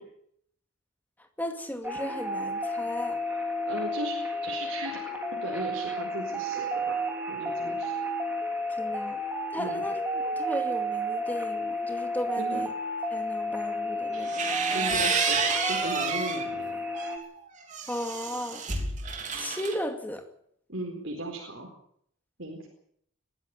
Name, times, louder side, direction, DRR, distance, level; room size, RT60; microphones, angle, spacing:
voice 1, 1.4-3.2 8.8-9.2 9.5-12.7 13.1-14.4 17.9-18.6 19.4-20.2, equal, 10° left, 6 dB, 2.3 m, -35 dB
sound 1, 1.8-17.2, equal, 10° right, 3.3 m, -32 dB
voice 2, 3.7-5.0 5.3-7.0 7.3-7.9 9.5-9.9 12.3-12.6 14.7-17.0 20.7-21.7 22.4-22.7, right 2 dB, 60° right, 0 dB, 4.5 m, -37 dB
sound 2, 14.1-16.5 16.9-19.8, right 5 dB, 35° right, 3.2 m, -30 dB
22.0 x 14.0 x 9.0 m, 0.68 s
head